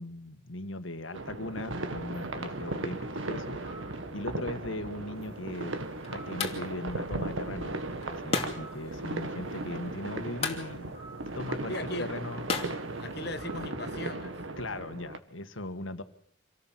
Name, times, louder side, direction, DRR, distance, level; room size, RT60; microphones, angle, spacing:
voice 1, 0.0-3.6 4.1-5.8 6.1-7.8 8.1-10.9 11.3-11.7 12.0-12.4 14.6-16.0, left 2 dB, 80° left, 9 dB, 1.8 m, -38 dB
sound 1, 1.1-15.2, right 2 dB, 80° right, 1.8 m, -37 dB
sound 2, 1.5-14.8, right 2 dB, 25° right, 4.3 m, -57 dB
sound 3, 5.2-13.7, left 4 dB, 30° left, 2.9 m, -39 dB
voice 2, 11.7-12.1 13.0-14.3, left 2 dB, 55° left, 10 dB, 1.4 m, -38 dB
26.5 x 17.5 x 7.6 m, 0.65 s
head